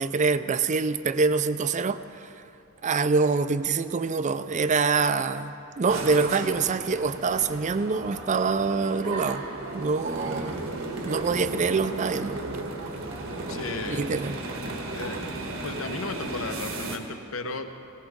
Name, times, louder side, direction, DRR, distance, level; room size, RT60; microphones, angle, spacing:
voice 1, 0.0-2.3 2.8-9.4 9.7-10.7 11.0-12.4 13.8-14.4, right 4 dB, 35° right, 12 dB, 0.4 m, -25 dB
sound 1, 5.9-17.0, right 2 dB, 75° right, 1.4 m, -35 dB
voice 2, 13.5-14.0 14.9-15.2 15.6-17.9, left 3 dB, 70° left, 7 dB, 0.9 m, -35 dB
18.0 x 17.5 x 3.6 m, 2.7 s
head